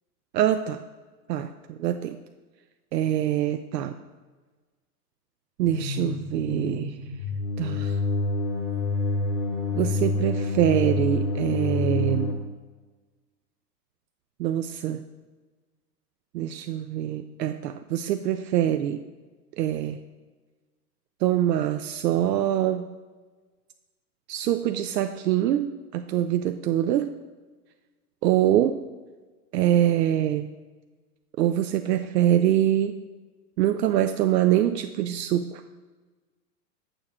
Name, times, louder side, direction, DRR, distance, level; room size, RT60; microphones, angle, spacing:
voice 1, 0.3-0.8 1.3-2.2 2.9-3.9 5.6-7.0 7.6-8.0 9.7-12.4 14.4-15.0 16.3-19.0 19.6-20.0 21.2-22.9 24.3-27.1 28.2-28.8 29.5-30.5 31.4-33.0 33.6-35.6, right 11 dB, 80° right, 8 dB, 0.6 m, -24 dB
sound 1, 5.6-12.3, left 3 dB, 90° left, 2.3 m, -27 dB
8.5 x 6.9 x 3.5 m, 1.3 s
supercardioid pair, 175°, 49 cm